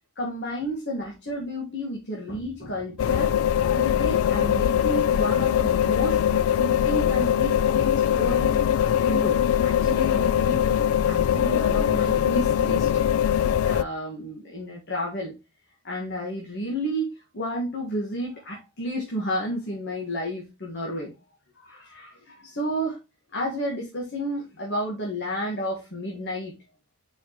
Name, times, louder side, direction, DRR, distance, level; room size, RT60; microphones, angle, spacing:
voice 1, 0.2-3.3 3.7-8.6 9.0-12.9 13.6-15.4 15.8-21.1 21.5-23.0 23.3-26.5, equal, 50° left, -1 dB, 1.6 m, -31 dB
sound 1, 3.0-13.8, left 9 dB, 70° left, 0.3 m, -22 dB
6.5 x 4.9 x 3.0 m, 0.27 s
head